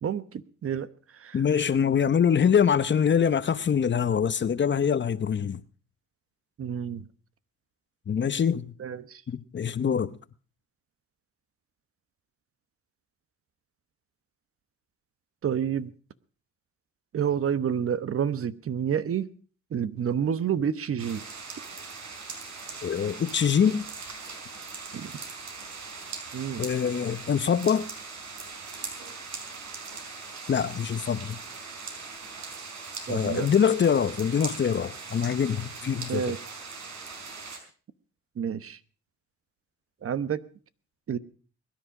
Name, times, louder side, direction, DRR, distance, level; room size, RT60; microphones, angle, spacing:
voice 1, 0.0-1.7 6.6-7.1 8.8-9.2 15.4-15.9 17.1-19.3 19.7-21.2 24.9-25.1 26.3-26.7 33.1-33.6 36.1-36.4 38.4-38.8 40.0-40.4 41.1-41.2, right 8 dB, 50° right, 1.0 m, -29 dB
voice 2, 1.3-5.6 8.1-8.7 9.3-10.2 22.8-23.8 26.6-27.9 30.5-31.4 33.1-36.3, left 7 dB, 40° left, 0.9 m, -24 dB
sound 1, 21.0-37.6, right 4 dB, 65° right, 4.8 m, -40 dB
22.0 x 10.5 x 4.9 m
cardioid pair, 90°, 30 cm